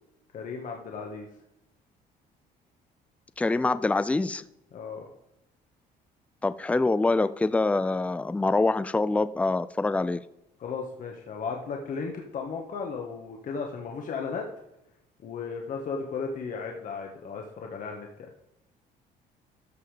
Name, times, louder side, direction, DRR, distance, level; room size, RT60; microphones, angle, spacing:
voice 1, 0.3-1.3 4.7-5.1 8.4-8.5 10.6-14.5 15.2-18.3, left 5 dB, 50° left, 1 dB, 1.7 m, -35 dB
voice 2, 3.4-4.4 6.4-10.2, left 3 dB, 10° left, 15 dB, 0.5 m, -25 dB
13.5 x 5.7 x 5.1 m, 0.85 s
cardioid pair, 110°, 17 cm